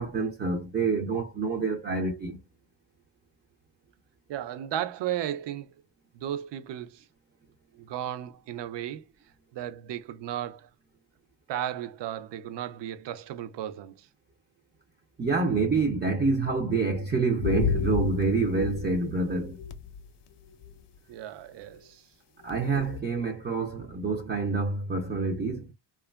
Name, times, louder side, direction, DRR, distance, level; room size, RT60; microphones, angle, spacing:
voice 1, 0.0-2.4 15.2-19.6 22.4-25.7, right 3 dB, 25° right, 0.4 m, -27 dB
voice 2, 4.3-5.8 6.1-7.0 7.7-9.0 9.5-10.7 11.5-14.1 21.1-22.0 22.6-22.8, right 11 dB, 70° right, 0.6 m, -35 dB
sound 1, 17.4-20.1 20.5-20.7 21.8-21.9 22.5-22.6 22.9-23.0, left 6 dB, 70° left, 0.5 m, -31 dB
2.8 x 2.3 x 2.2 m
cardioid pair, 125°, 44 cm